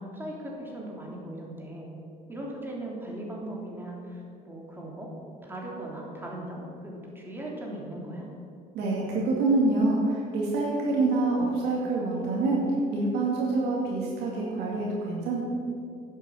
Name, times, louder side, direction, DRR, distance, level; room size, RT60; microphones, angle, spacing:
voice 1, 0.0-1.9 2.3-5.1 5.4-8.3, right 1 dB, 10° right, -3 dB, 3.3 m, -38 dB
voice 2, 8.7-12.6 12.9-15.4, right 2 dB, 85° right, -4 dB, 2.4 m, -26 dB
10.5 x 8.1 x 8.0 m, 2.5 s
cardioid pair, 110°, 17 cm